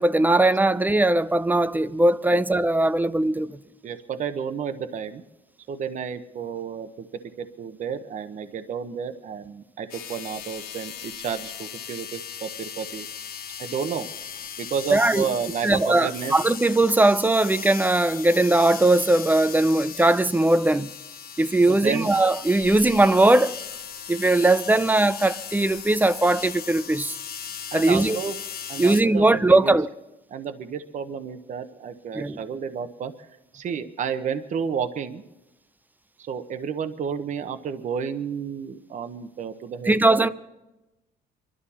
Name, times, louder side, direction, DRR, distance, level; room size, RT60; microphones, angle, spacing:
voice 1, 0.0-3.6 14.9-15.2 15.6-20.9 21.4-23.6 24.1-27.2 27.7-28.2 28.8-29.9 32.1-32.4 39.9-40.3, right 2 dB, 10° right, 0.5 m, -20 dB
voice 2, 3.8-5.2 5.7-7.1 7.4-13.1 13.6-14.1 14.6-16.3 21.7-22.1 27.7-28.4 28.7-29.8 30.3-33.1 33.5-35.2 36.2-40.3, right 7 dB, 45° right, 0.9 m, -31 dB
sound 1, 9.9-29.0, left 8 dB, 65° left, 1.0 m, -38 dB
25.0 x 12.5 x 4.2 m
cardioid pair, 110°, 17 cm